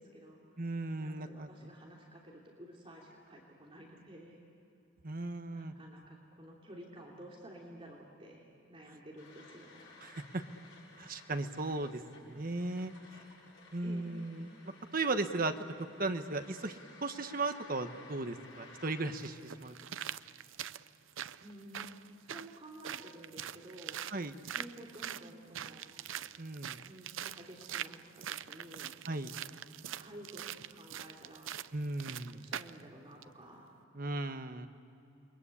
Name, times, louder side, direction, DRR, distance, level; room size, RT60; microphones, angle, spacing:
voice 1, 0.0-0.6 0.9-4.4 5.4-9.9 13.8-14.2 21.4-21.9 22.2-24.0 24.5-25.9 26.8-28.9 29.9-31.5 32.3-33.7, right 1 dB, 30° right, -2 dB, 3.1 m, -52 dB
voice 2, 0.6-1.7 5.0-5.7 10.0-10.4 11.0-12.0 12.3-12.9 13.7-15.5 16.0-16.8 17.0-19.7 24.1-24.3 26.4-26.8 29.1-29.3 31.7-32.5 33.9-34.7, right 2 dB, 45° right, 8 dB, 1.2 m, -36 dB
sound 1, 9.2-19.1, left 3 dB, 65° left, 7.3 m, -57 dB
sound 2, 18.4-18.5 19.2-32.8 33.2-33.3, right 10 dB, 75° right, 0.5 m, -43 dB
28.5 x 22.5 x 8.5 m, 2.9 s
head